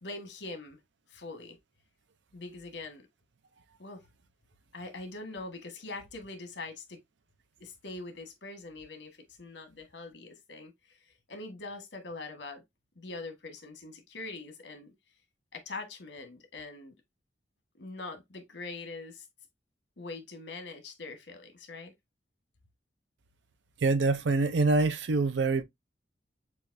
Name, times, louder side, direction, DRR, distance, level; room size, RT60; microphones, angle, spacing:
voice 1, 0.0-0.8 1.1-1.6 2.3-3.1 3.8-4.0 4.7-7.0 7.6-12.6 13.0-14.9 15.5-16.9 17.8-19.2 20.0-21.9, left 3 dB, 70° left, 1.3 m, -43 dB
voice 2, 23.8-25.6, right 3 dB, 75° right, 0.5 m, -25 dB
6.9 x 2.5 x 2.5 m
head